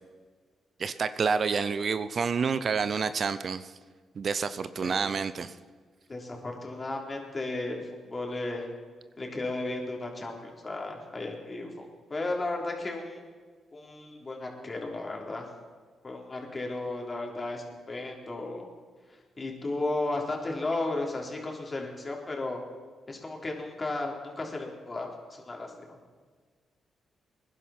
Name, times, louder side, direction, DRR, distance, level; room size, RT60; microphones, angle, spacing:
voice 1, 0.8-3.7 4.2-5.5, right 5 dB, 55° right, 13 dB, 0.6 m, -28 dB
voice 2, 6.1-8.7 9.2-13.2 13.7-15.4 16.0-18.6 19.4-22.6 23.1-26.0, left 2 dB, 35° left, 0 dB, 3.5 m, -34 dB
20.5 x 11.0 x 4.3 m, 1.5 s
hypercardioid pair, 45°, 0 cm